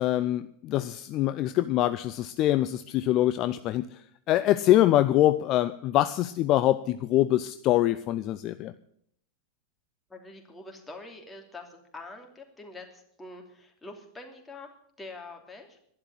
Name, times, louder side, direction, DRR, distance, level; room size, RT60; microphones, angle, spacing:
voice 1, 0.0-3.9 4.3-8.7, left 14 dB, 35° left, 12 dB, 0.5 m, -24 dB
voice 2, 10.1-14.7 15.0-15.8, left 2 dB, 10° left, 2 dB, 2.9 m, -45 dB
11.5 x 11.0 x 9.5 m, 0.70 s
figure-of-eight pair, 90°, 0 cm